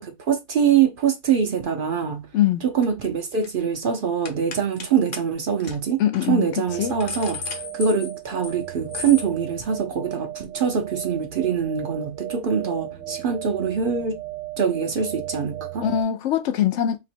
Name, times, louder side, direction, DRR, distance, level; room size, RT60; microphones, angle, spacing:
voice 1, 0.0-2.3 2.6-6.0 6.3-14.2 14.6-15.9, right 7 dB, 55° right, 0.7 m, -24 dB
voice 2, 2.3-2.6 6.0-6.5 6.8-6.9 15.8-17.0, left 10 dB, 75° left, 0.9 m, -22 dB
sound 1, 2.8-3.1 3.3-3.6 4.2-4.9 5.1-5.2 5.6-5.8 6.1-6.3 6.7-8.6 8.9-9.3, left 4 dB, 45° left, 0.8 m, -35 dB
sound 2, 6.7-16.0, right 13 dB, 80° right, 1.0 m, -36 dB
2.9 x 2.8 x 4.4 m
omnidirectional pair, 1.2 m